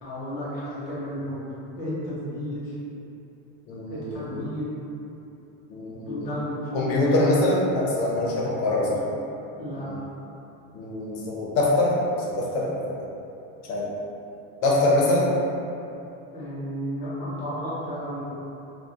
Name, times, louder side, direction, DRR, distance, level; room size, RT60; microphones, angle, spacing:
voice 1, 0.0-1.4 1.8-2.7 3.9-4.8 5.9-7.2 8.8-9.1 9.6-9.9 16.3-18.2, equal, 25° left, -8 dB, 0.3 m, -33 dB
voice 2, 3.7-4.4 5.7-6.2 6.7-9.0 9.8-10.0 10.7-11.9 12.3-12.9 13.7-13.9 14.6-15.3, left 2 dB, 60° left, -4 dB, 0.6 m, -24 dB
2.7 x 2.0 x 2.3 m, 2.8 s
cardioid pair, 175°, 38 cm